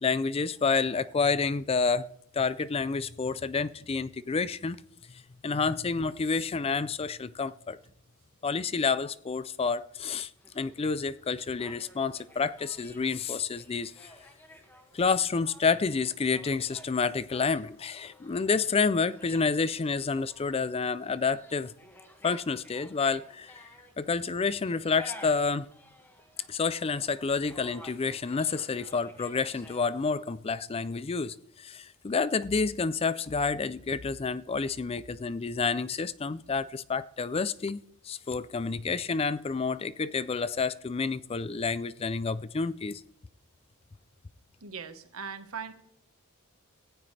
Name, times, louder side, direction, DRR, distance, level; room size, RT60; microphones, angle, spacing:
voice 1, 0.0-2.1 2.3-4.8 5.4-7.8 8.4-10.3 10.5-14.1 14.9-21.7 22.2-23.7 24.0-25.7 26.5-43.0, left 4 dB, 25° left, 0.4 m, -29 dB
sound 1, 10.4-29.8, equal, 10° left, 1.9 m, -53 dB
voice 2, 44.6-45.7, right 6 dB, 85° right, 1.4 m, -39 dB
17.5 x 15.0 x 3.3 m
head